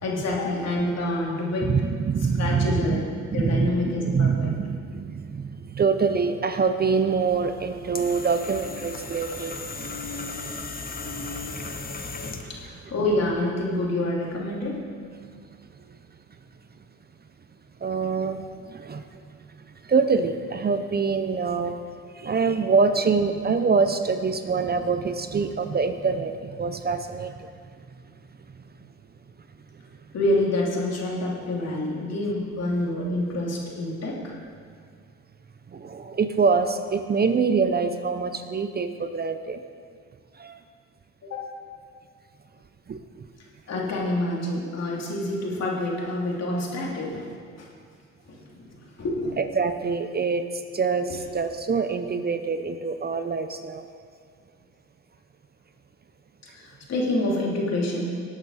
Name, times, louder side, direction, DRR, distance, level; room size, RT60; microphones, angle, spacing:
voice 1, 0.0-1.7 2.4-4.5 12.5-14.8 30.1-34.3 41.2-41.4 43.7-47.3 47.6-47.7 48.3-48.7 49.0-49.3 51.1-51.2 56.6-58.0, left 1 dB, 60° left, -3 dB, 3.1 m, -27 dB
voice 2, 1.6-3.0 3.3-5.5 5.7-9.6 17.8-18.4 18.7-19.0 19.9-21.8 22.2-27.3 35.8-39.6 40.4-40.6 42.9-43.0 49.4-50.4 50.7-53.8, right 5 dB, 30° right, 9 dB, 0.7 m, -25 dB
sound 1, 7.3-12.7, left 3 dB, 30° left, 1.1 m, -36 dB
18.5 x 8.7 x 4.2 m, 2.1 s
cardioid pair, 90°, 30 cm